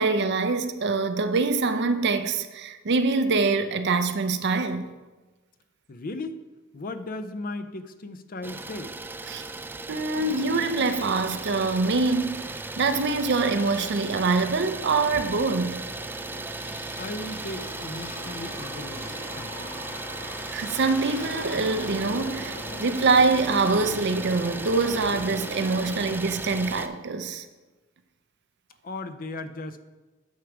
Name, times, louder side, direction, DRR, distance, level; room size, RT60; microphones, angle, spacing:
voice 1, 0.0-4.9 9.3-9.4 9.9-15.8 20.2-27.4, right 3 dB, 55° right, 0.6 m, -24 dB
voice 2, 5.9-6.5 6.7-9.0 17.0-19.6 28.8-29.8, left 2 dB, 45° left, 0.5 m, -36 dB
Idling, 8.4-26.9, right 2 dB, 10° right, 0.4 m, -36 dB
sound 1, 10.1-11.9 12.4-26.2, left 1 dB, 70° left, 1.7 m, -42 dB
9.4 x 4.7 x 6.0 m
head